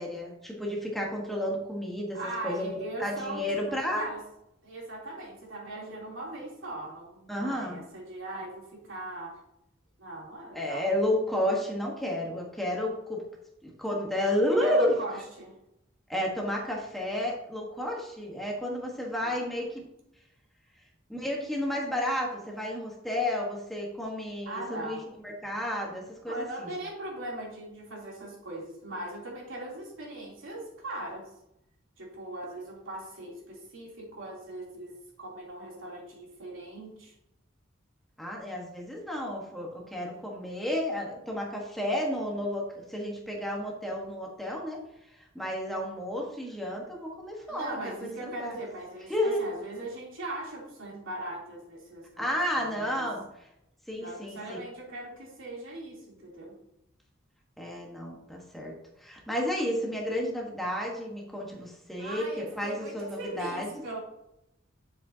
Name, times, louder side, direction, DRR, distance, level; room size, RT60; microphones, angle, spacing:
voice 1, 0.0-2.2 2.4-4.0 7.3-7.8 10.5-13.2 13.6-15.0 16.1-19.8 21.1-25.0 25.2-26.7 38.2-44.8 45.3-48.6 49.1-49.4 52.2-53.2 53.9-54.6 57.6-58.7 59.0-63.8, left 1 dB, ahead, -2 dB, 1.3 m, -31 dB
voice 2, 2.1-4.2 4.6-9.4 10.0-10.9 14.6-15.6 19.2-19.4 24.4-25.0 26.3-31.3 32.0-37.1 47.5-52.3 52.5-53.1 54.0-56.5 62.0-64.0, right 1 dB, 80° right, -3 dB, 3.0 m, -40 dB
9.4 x 7.2 x 2.8 m, 0.83 s
head